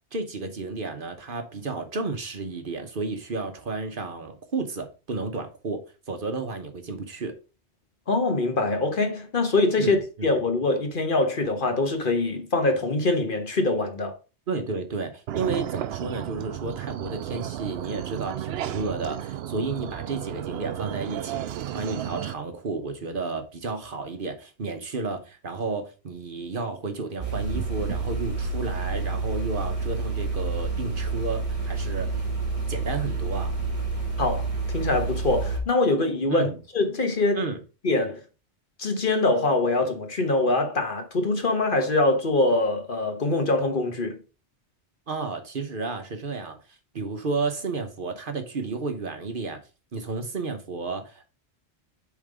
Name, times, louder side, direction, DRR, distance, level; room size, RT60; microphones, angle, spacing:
voice 1, 0.0-5.8 6.1-7.3 9.8-10.3 14.5-32.3 32.7-33.5 36.3-36.6 37.3-37.6 45.1-49.6 49.9-51.3, right 3 dB, 50° right, 1.1 m, -32 dB
voice 2, 8.1-14.1 34.2-37.4 37.8-38.2 38.8-44.2, left 2 dB, 50° left, 1.3 m, -24 dB
sound 1, 15.3-22.3, right 11 dB, 70° right, 0.8 m, -33 dB
sound 2, 27.2-35.6, right 3 dB, 30° right, 2.3 m, -29 dB
7.2 x 3.7 x 4.9 m
omnidirectional pair, 1.2 m